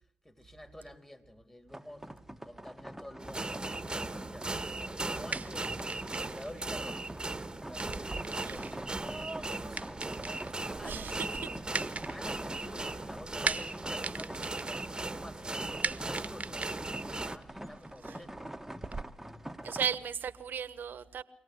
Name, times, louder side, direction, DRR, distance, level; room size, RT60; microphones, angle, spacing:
voice 1, 0.2-7.1 7.7-11.2 12.1-18.5, left 1 dB, 15° left, 3.6 m, -50 dB
sound 1, 1.7-19.9, right 1 dB, 5° right, 1.6 m, -46 dB
sound 2, 3.2-17.4, right 2 dB, 25° right, 1.5 m, -38 dB
sound 3, 5.3-19.0, right 4 dB, 40° right, 1.3 m, -41 dB
voice 2, 10.8-11.1 11.4-11.5 18.0-18.2 19.6-21.2, right 8 dB, 65° right, 1.3 m, -35 dB
24.5 x 18.0 x 8.3 m
supercardioid pair, 50°, 4 cm